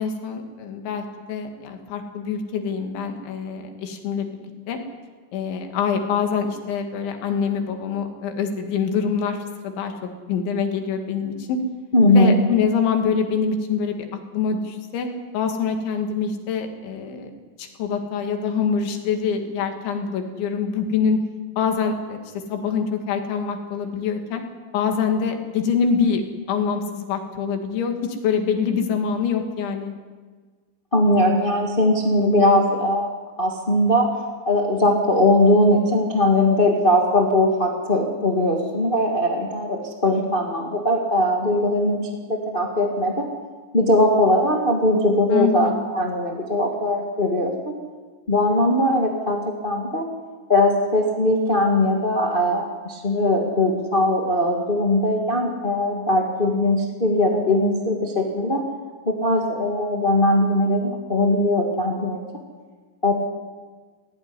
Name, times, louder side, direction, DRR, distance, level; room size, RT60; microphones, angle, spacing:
voice 1, 0.0-4.8 5.3-9.4 9.6-9.9 10.3-11.6 12.1-14.0 14.3-15.1 15.3-17.3 17.6-21.2 21.6-22.2 22.5-24.4 24.7-26.2 26.5-29.9 45.3-45.8, left 6 dB, 80° left, 4 dB, 4.5 m, -25 dB
voice 2, 11.9-12.4 30.9-33.1 33.4-34.1 34.4-43.3 43.7-47.7 48.3-50.0 50.5-58.6 59.0-62.2 63.0-63.1, left 1 dB, 45° left, 0 dB, 0.7 m, -20 dB
17.5 x 16.5 x 9.8 m, 1.4 s
omnidirectional pair, 5.2 m